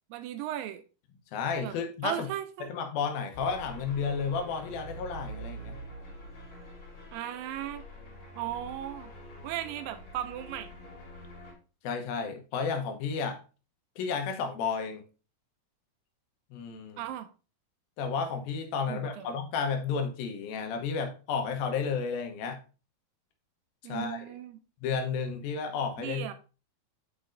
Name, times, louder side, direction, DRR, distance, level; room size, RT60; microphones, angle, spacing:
voice 1, 0.1-0.8 1.6-1.8 2.0-2.7 7.1-7.8 8.4-9.1 9.4-10.7 17.0-17.3 18.9-19.3 23.8-24.6 26.0-26.3, right 12 dB, 80° right, 2.2 m, -36 dB
voice 2, 1.3-2.3 2.6-5.8 11.8-13.4 14.0-15.0 16.5-17.0 18.0-22.6 23.9-24.3 24.8-26.3, left 5 dB, 85° left, 2.7 m, -32 dB
sound 1, 3.3-11.5, right 1 dB, 55° left, 3.5 m, -45 dB
9.4 x 5.0 x 2.5 m
omnidirectional pair, 4.2 m